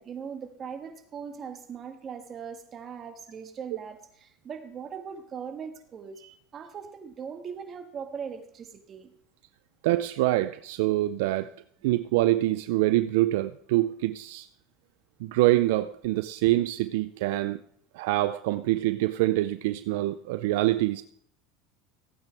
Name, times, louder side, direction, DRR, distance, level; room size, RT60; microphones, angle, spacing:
voice 1, 0.0-6.2 6.5-9.1, right 6 dB, 35° right, 5 dB, 1.7 m, -40 dB
voice 2, 9.8-11.5 11.8-14.5 15.2-17.6 17.9-21.0, right 16 dB, 75° right, 12 dB, 0.4 m, -25 dB
16.0 x 8.9 x 3.4 m, 0.64 s
supercardioid pair, 120°, 0 cm